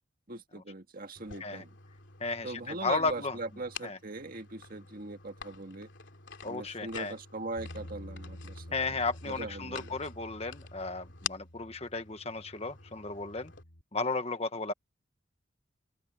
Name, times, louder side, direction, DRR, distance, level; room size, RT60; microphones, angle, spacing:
voice 1, 0.3-1.7 2.4-5.9 6.4-9.0 9.3-10.0, right 2 dB, 45° right, 1.9 m, -41 dB
sound 1, 1.1-13.6, left 7 dB, 65° left, 3.0 m, -47 dB
voice 2, 2.2-3.3 3.8-4.0 6.4-7.1 8.7-13.5 13.9-14.7, left 3 dB, 30° left, 1.4 m, -34 dB
Bass guitar, 7.6-13.8, equal, 85° left, 3.4 m, -49 dB
open air
head